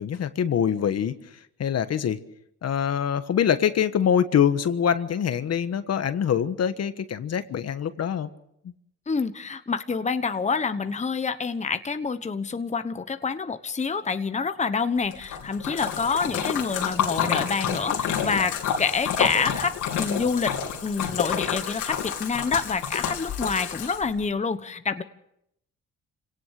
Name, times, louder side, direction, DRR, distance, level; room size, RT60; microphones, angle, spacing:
voice 1, 0.0-2.2 2.6-8.3, left 8 dB, 55° left, 11 dB, 1.4 m, -24 dB
voice 2, 9.1-25.0, left 5 dB, 25° left, 10 dB, 1.1 m, -27 dB
Splash splatter, 15.1-24.2, left 8 dB, 85° left, 3.5 m, -29 dB
26.5 x 17.5 x 6.6 m, 0.77 s
cardioid pair, 90°, 30 cm